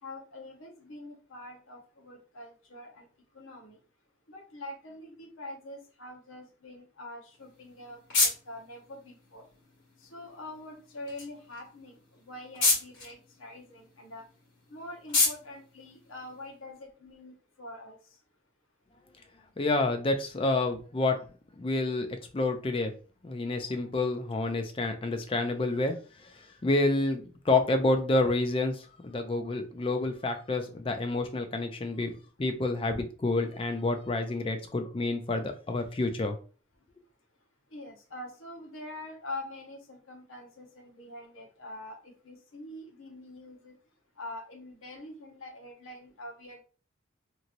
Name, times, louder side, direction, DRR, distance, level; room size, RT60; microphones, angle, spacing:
voice 1, 0.0-3.8 4.3-9.5 10.0-14.3 14.7-18.2 36.8-36.9 37.7-43.8 44.1-46.6, left 1 dB, 85° left, 2 dB, 0.9 m, -45 dB
sound 1, 7.3-16.8, left 3 dB, 65° left, 1.6 m, -33 dB
voice 2, 19.6-21.2 21.6-22.1 22.3-22.9 23.2-25.9 26.2-32.1 32.4-36.4, left 2 dB, 25° left, 5 dB, 0.4 m, -28 dB
3.0 x 2.7 x 2.5 m, 0.38 s
head